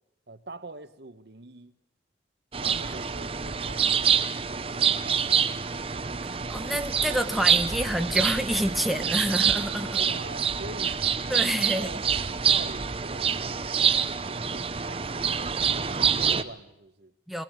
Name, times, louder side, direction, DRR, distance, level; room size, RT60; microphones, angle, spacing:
voice 1, 0.3-1.7 2.6-5.7 9.9-11.0 11.2-13.8 14.2-17.1, right 2 dB, 65° right, 1.2 m, -44 dB
New Jersey Backyard in Springtime Ambience (loop), 2.5-16.4, right 7 dB, 30° right, 0.8 m, -26 dB
voice 2, 6.2-10.0 11.3-11.9 17.3-17.4, equal, ahead, 1.0 m, -28 dB
22.0 x 19.5 x 8.9 m
head